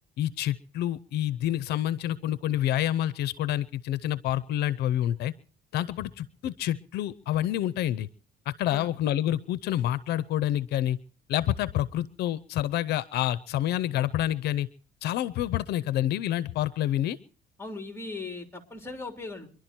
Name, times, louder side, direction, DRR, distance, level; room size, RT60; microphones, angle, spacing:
voice 1, 0.2-5.3 5.7-8.1 8.5-11.0 11.3-14.7 15.0-17.2, left 12 dB, 75° left, 17 dB, 0.7 m, -28 dB
voice 2, 8.7-9.0 17.6-19.5, left 3 dB, 15° left, 6 dB, 3.4 m, -38 dB
24.0 x 11.5 x 4.4 m, 0.42 s
cardioid pair, 110°, 17 cm